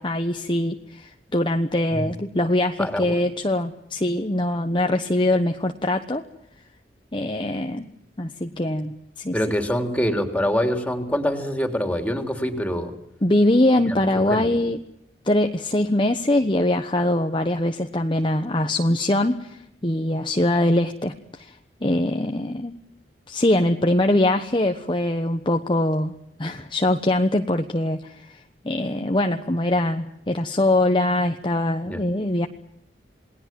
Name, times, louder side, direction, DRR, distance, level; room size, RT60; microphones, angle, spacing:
voice 1, 0.0-6.2 7.1-7.9 8.2-9.4 13.2-14.8 15.2-21.6 21.8-22.8 23.3-26.1 26.4-28.4 28.6-32.5, left 1 dB, 30° left, 5 dB, 1.1 m, -22 dB
voice 2, 2.8-3.2 9.3-12.9 13.8-14.5 31.8-32.0, equal, 10° left, 5 dB, 3.4 m, -25 dB
28.0 x 20.0 x 7.6 m, 0.78 s
head